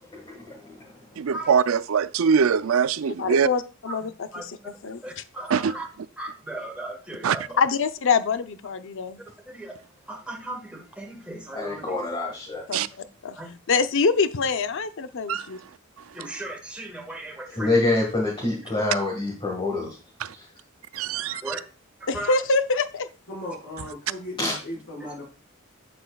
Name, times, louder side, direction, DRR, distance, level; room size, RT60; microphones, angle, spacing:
voice 1, 0.1-0.8 11.5-12.6 17.5-20.0 20.3-20.4 24.4-24.5, left 2 dB, 25° left, 1.7 m, -26 dB
voice 2, 1.2-3.5 5.5-5.7 7.2-7.4 12.7-12.9 15.3-15.5 20.2-20.3 20.9-21.6, right 6 dB, 70° right, 0.4 m, -22 dB
voice 3, 3.2-5.2 7.6-9.2 12.7-12.8 13.2-13.4 13.7-15.6 22.1-23.1, left 4 dB, 65° left, 0.6 m, -25 dB
voice 4, 5.0-5.9 6.2-7.4 9.5-9.8 10.1-10.6 11.0-12.0 13.4-13.5 16.1-17.7 21.3-21.6 22.1-22.3, right 1 dB, 5° right, 1.5 m, -36 dB
voice 5, 23.3-25.3, left 1 dB, 90° left, 4.5 m, -36 dB
8.6 x 7.6 x 2.3 m
head